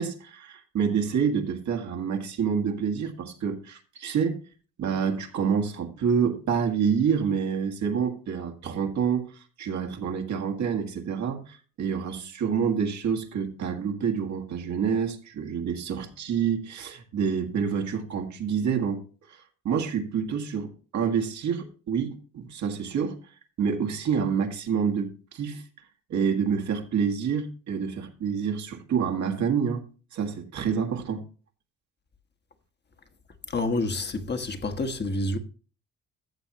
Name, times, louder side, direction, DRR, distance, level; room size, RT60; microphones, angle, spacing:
voice 1, 0.0-4.4 4.8-9.3 9.6-19.0 19.3-19.4 19.6-23.2 23.6-25.6 26.1-29.8 30.1-31.2, right 7 dB, 70° right, 1.9 m, -27 dB
voice 2, 33.5-35.4, left 2 dB, 35° left, 1.3 m, -28 dB
14.0 x 7.2 x 2.9 m
cardioid pair, 90°, 30 cm